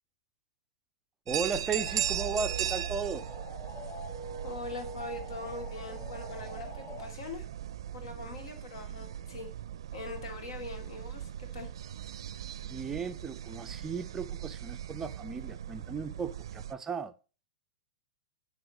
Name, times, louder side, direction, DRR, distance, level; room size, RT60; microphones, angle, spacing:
voice 1, 1.3-3.3 12.6-17.1, right 5 dB, 10° right, 0.4 m, -36 dB
sound 1, 1.3-16.7, right 10 dB, 70° right, 0.4 m, -38 dB
sound 2, 1.7-7.1, equal, 25° left, 3.9 m, -44 dB
voice 2, 4.4-7.5 7.9-9.5 9.9-11.7, left 3 dB, 75° left, 2.4 m, -42 dB
9.7 x 3.5 x 5.1 m
hypercardioid pair, 150°, 3 cm